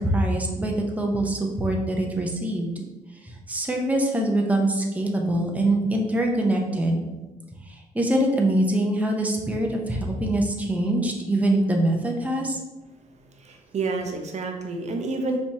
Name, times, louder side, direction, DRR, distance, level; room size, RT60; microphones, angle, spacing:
voice 1, 0.0-2.7 3.2-7.0 7.6-12.6, right 1 dB, 10° right, 1 dB, 0.8 m, -24 dB
voice 2, 13.4-15.4, right 3 dB, 40° right, 3 dB, 0.9 m, -29 dB
5.3 x 3.4 x 2.9 m, 1.1 s
hypercardioid pair, 50°, 17 cm